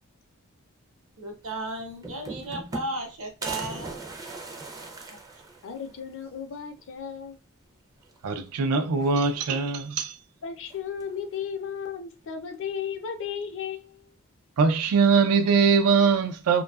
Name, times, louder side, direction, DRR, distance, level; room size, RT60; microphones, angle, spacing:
voice 1, 1.2-4.0, right 2 dB, 65° right, 0.8 m, -34 dB
sound 1, 1.4-1.5 1.8-3.1 3.4-6.0 6.4-6.5 6.8-6.9 8.0-8.5 8.9-9.6 10.7-11.2, right 2 dB, 15° right, 0.4 m, -39 dB
voice 2, 5.6-7.4 10.4-14.1, left 7 dB, 60° left, 0.5 m, -35 dB
voice 3, 8.2-10.1 14.6-16.6, right 5 dB, 90° right, 0.4 m, -22 dB
2.6 x 2.3 x 2.2 m
head